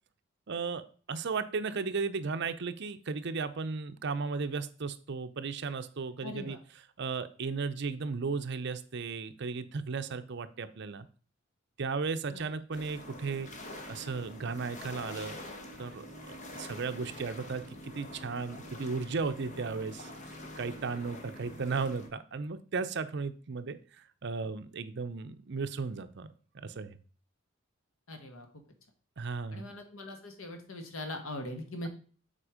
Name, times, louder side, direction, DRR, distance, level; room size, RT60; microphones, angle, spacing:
voice 1, 0.5-0.8 1.1-6.6 7.0-11.1 11.8-13.5 13.9-15.4 15.8-17.6 17.9-20.1 20.6-27.0 29.2-29.7, right 4 dB, 55° right, 11 dB, 0.6 m, -35 dB
voice 2, 6.2-6.6 12.3-12.5 28.1-28.5 29.5-31.9, left 1 dB, 80° left, 6 dB, 1.4 m, -41 dB
sound 1, 12.7-22.1, left 1 dB, 35° left, 1.1 m, -46 dB
7.5 x 4.4 x 4.9 m, 0.42 s
head